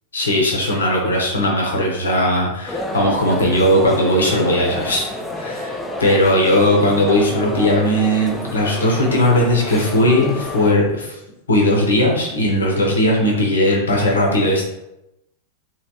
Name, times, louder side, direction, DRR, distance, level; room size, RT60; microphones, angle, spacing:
voice 1, 0.1-5.1 5.4-11.2 11.5-14.7, left 1 dB, 70° left, -1 dB, 0.9 m, -18 dB
sound 1, 2.7-10.7, left 1 dB, 5° left, 0.6 m, -29 dB
3.2 x 3.2 x 2.8 m, 0.89 s
figure-of-eight pair, 90°, 0 cm